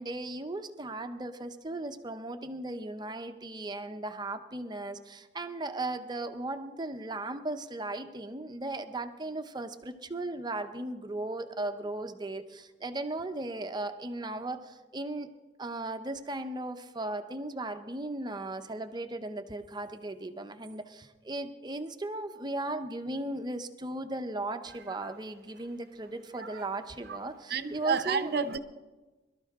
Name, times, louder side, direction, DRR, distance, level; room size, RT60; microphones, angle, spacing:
voice 1, 0.0-15.3 15.6-28.3, right 2 dB, 25° right, 8 dB, 0.8 m, -37 dB
voice 2, 27.5-28.6, right 6 dB, 60° right, 11 dB, 0.8 m, -30 dB
22.5 x 12.5 x 3.6 m, 1.2 s
head